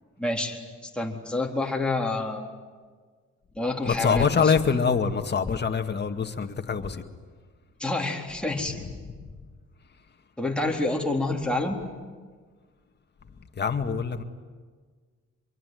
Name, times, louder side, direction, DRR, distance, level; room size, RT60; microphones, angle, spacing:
voice 1, 0.2-2.5 3.5-4.5 7.8-8.8 10.4-11.8, left 2 dB, 5° left, 0 dB, 4.1 m, -28 dB
voice 2, 3.9-7.0 13.6-14.2, left 6 dB, 35° left, 6 dB, 2.1 m, -24 dB
25.5 x 23.0 x 9.5 m, 1.5 s
cardioid pair, 90°, 30 cm